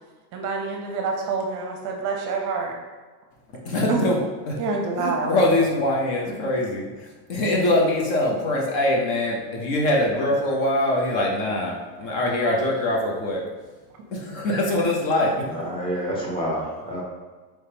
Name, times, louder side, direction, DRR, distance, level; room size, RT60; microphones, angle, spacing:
voice 1, 0.3-2.8 3.9-4.0 4.6-5.3, right 4 dB, 40° right, 2 dB, 0.6 m, -27 dB
voice 2, 3.6-4.2 4.5-4.6 5.0-6.9 7.3-13.4 14.1-15.4, left 1 dB, 50° left, -2 dB, 0.8 m, -23 dB
voice 3, 15.5-17.0, equal, 10° left, -3 dB, 0.6 m, -28 dB
4.5 x 3.5 x 2.8 m, 1.3 s
supercardioid pair, 150°, 49 cm